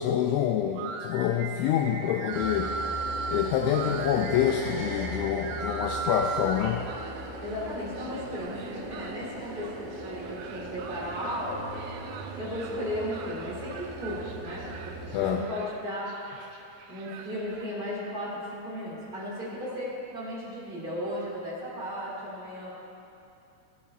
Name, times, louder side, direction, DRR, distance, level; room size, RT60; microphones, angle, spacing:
voice 1, 0.0-2.7 3.3-6.8 15.1-15.5, left 9 dB, 90° left, 3 dB, 2.7 m, -27 dB
sound 1, 0.7-17.7, right 4 dB, 85° right, 3.4 m, -39 dB
sound 2, 2.3-15.3, right 1 dB, 70° right, 2.0 m, -39 dB
voice 2, 7.4-11.6 12.4-16.2 16.7-22.8, equal, 50° right, -7 dB, 0.6 m, -35 dB
15.5 x 8.2 x 4.3 m, 2.7 s
omnidirectional pair, 5.9 m